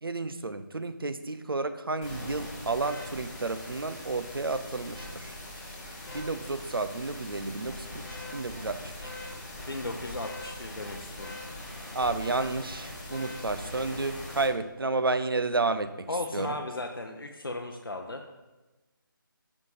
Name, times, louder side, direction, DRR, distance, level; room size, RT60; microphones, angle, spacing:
voice 1, 0.0-5.3 6.1-9.1 11.9-16.5, right 3 dB, 85° right, 11 dB, 0.5 m, -31 dB
sound 1, 2.0-14.4, left 1 dB, 10° left, 1.4 m, -41 dB
voice 2, 9.7-11.4 16.1-18.2, left 2 dB, 90° left, 3 dB, 0.5 m, -36 dB
5.3 x 4.7 x 4.1 m, 1.1 s
figure-of-eight pair, 155°, 12 cm